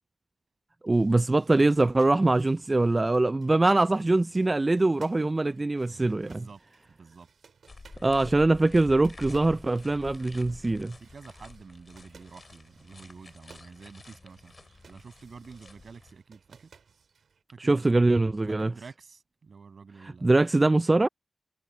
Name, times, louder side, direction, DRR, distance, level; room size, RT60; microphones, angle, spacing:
voice 1, 0.8-6.4 8.0-11.0 17.6-18.7 20.2-21.1, right 2 dB, 30° right, 0.3 m, -23 dB
sound 1, 0.9-17.4, right 6 dB, 90° right, 5.7 m, -60 dB
voice 2, 5.8-6.6 6.9-7.3 11.0-14.5 14.9-16.7 17.5-18.1 18.5-20.3, right 5 dB, 70° right, 6.4 m, -48 dB
sound 2, 7.7-16.1, left 3 dB, 50° left, 6.7 m, -48 dB
cardioid pair, 65°, 0 cm